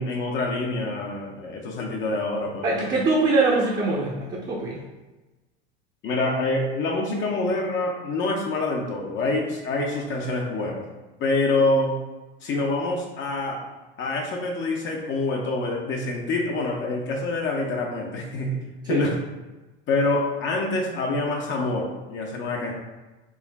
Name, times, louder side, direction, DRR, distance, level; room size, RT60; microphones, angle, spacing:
voice 1, 0.0-2.9 6.0-10.9 11.2-11.9 12.4-13.6 14.0-18.6 18.9-19.2 19.9-22.7, left 2 dB, 40° left, 0 dB, 0.6 m, -26 dB
voice 2, 2.6-4.8 18.8-19.1, right 3 dB, 30° right, -2 dB, 0.6 m, -23 dB
4.6 x 2.5 x 2.2 m, 1.1 s
hypercardioid pair, 95°, 30 cm